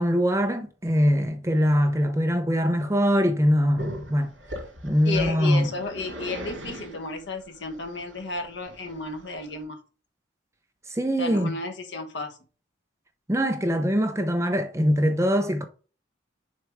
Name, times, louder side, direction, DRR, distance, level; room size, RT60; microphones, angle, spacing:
voice 1, 0.0-4.3 4.8-5.7 10.9-11.5 13.3-15.6, equal, 15° right, 0.8 m, -22 dB
Growling, 3.8-9.6, right 1 dB, 80° right, 2.6 m, -40 dB
voice 2, 5.0-9.8 11.2-12.4, left 3 dB, 65° left, 1.2 m, -33 dB
6.7 x 4.5 x 3.6 m
head